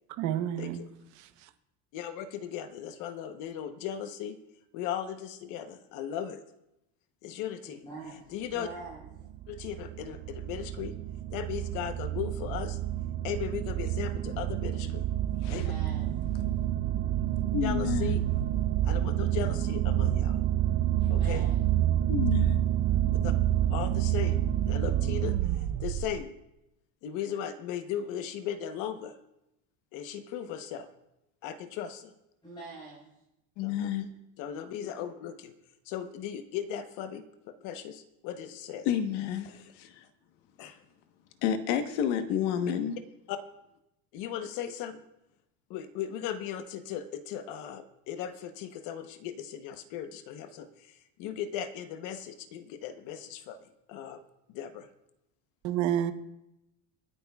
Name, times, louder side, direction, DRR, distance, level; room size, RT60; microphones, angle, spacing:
voice 1, 0.2-0.8 1.2-1.5 55.6-56.1, right 11 dB, 55° right, 1.0 m, -30 dB
voice 2, 1.9-4.4 4.7-6.4 7.2-7.8 8.3-8.7 9.5-10.9 11.3-12.8 13.2-15.0 15.5-15.7 17.6-18.4 18.8-20.4 21.1-21.4 23.2-23.3 23.7-26.3 27.0-29.2 29.9-30.9 31.4-32.1 34.4-35.5 35.9-38.9 39.5-39.7 40.6-40.8 43.3-43.4 44.1-45.0 45.7-53.6 53.9-54.2 54.5-54.9, left 9 dB, 60° left, 1.0 m, -37 dB
voice 3, 7.8-9.3 15.4-16.1 21.0-21.6 32.4-33.1, right 3 dB, 15° left, 5.0 m, -45 dB
sound 1, 8.7-26.2, right 12 dB, 40° right, 0.5 m, -28 dB
voice 4, 17.5-18.2 22.1-22.6 33.6-34.1 38.8-40.0 41.4-43.0, left 9 dB, 80° left, 1.3 m, -30 dB
25.5 x 9.9 x 2.4 m
cardioid pair, 170°, 35 cm